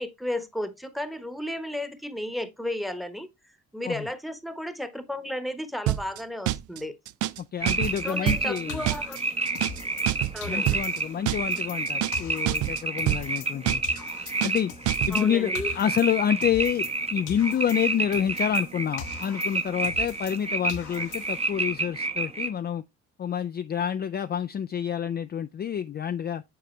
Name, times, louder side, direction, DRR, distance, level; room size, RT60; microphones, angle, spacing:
voice 1, 0.0-3.3 3.7-6.9 8.0-9.2 10.3-10.8 15.1-15.7, left 1 dB, ahead, 1.1 m, -33 dB
sound 1, 5.9-6.2 6.5-6.8 7.1-7.4 7.7-8.0 8.3-8.6 8.9-9.2 9.5-9.8 10.1-10.4 10.7-11.0 11.3-11.6 11.9-12.2 12.5-12.8 13.1-13.4 13.7-14.0 14.3-14.6 14.9-15.2, right 15 dB, 75° right, 0.5 m, -27 dB
voice 2, 7.4-8.8 10.5-13.8 14.4-14.7 15.1-22.8 23.2-26.4, left 9 dB, 35° left, 0.4 m, -28 dB
sound 2, 7.6-22.5, right 3 dB, 20° right, 0.9 m, -30 dB
sound 3, 7.8-10.1 10.4-13.6 13.8-17.0 17.3-20.4 20.7-21.5, left 6 dB, 85° left, 1.0 m, -43 dB
7.7 x 4.9 x 3.2 m
cardioid pair, 90°, 30 cm